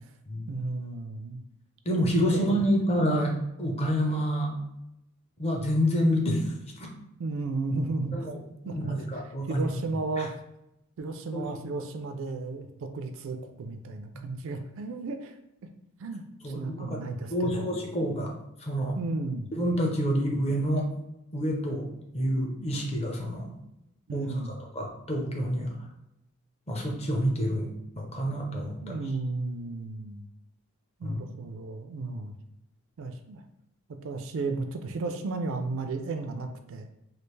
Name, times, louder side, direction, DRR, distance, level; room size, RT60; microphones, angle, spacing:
voice 1, 0.5-1.4 2.3-2.6 7.2-8.3 8.7-8.9 9.5-10.3 11.0-15.3 16.0-16.2 16.5-17.7 18.9-19.5 24.1-24.6 28.8-30.2 31.0-32.3 33.0-33.4 34.0-36.9, right 3 dB, 60° right, 7 dB, 0.4 m, -34 dB
voice 2, 1.9-4.5 5.4-6.9 8.1-8.4 8.6-9.7 10.2-10.3 11.3-11.4 14.1-14.3 16.4-17.0 17.3-18.3 18.6-19.0 19.5-20.9 21.3-21.9 22.1-23.5 24.1-25.7 26.7-29.0 31.0-31.2, equal, 30° left, 0 dB, 0.6 m, -28 dB
3.2 x 2.4 x 3.2 m, 0.86 s
head